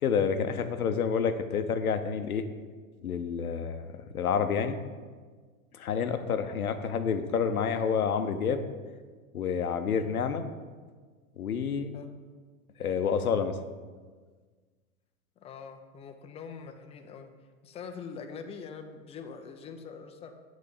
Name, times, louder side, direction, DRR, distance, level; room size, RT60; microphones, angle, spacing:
voice 1, 0.0-2.4 3.0-3.9 4.1-4.8 5.7-8.6 9.3-10.4 11.4-11.9 12.8-13.5, left 6 dB, 90° left, 9 dB, 0.7 m, -28 dB
voice 2, 15.4-17.3 17.6-20.3, left 6 dB, 15° left, 6 dB, 0.4 m, -43 dB
8.6 x 4.1 x 4.8 m, 1.5 s
hypercardioid pair, 100°, 42 cm